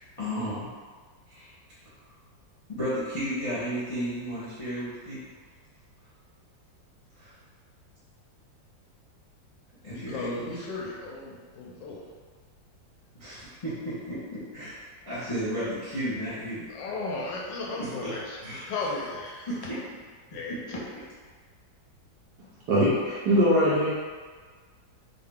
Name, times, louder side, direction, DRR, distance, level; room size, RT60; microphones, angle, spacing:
voice 1, 0.2-0.7 1.3-1.5 2.7-5.2 7.2-7.3 9.8-10.6 13.1-14.8 15.0-16.7 17.8-18.1 18.4-18.6 19.5-19.8 20.5-20.8, equal, 25° left, -13 dB, 0.8 m, -33 dB
voice 2, 9.9-12.0 16.7-19.5 20.3-20.9, left 3 dB, 80° left, -2 dB, 1.2 m, -35 dB
voice 3, 22.7-23.9, equal, 70° right, -9 dB, 1.1 m, -21 dB
3.7 x 2.2 x 3.4 m, 1.5 s
omnidirectional pair, 2.0 m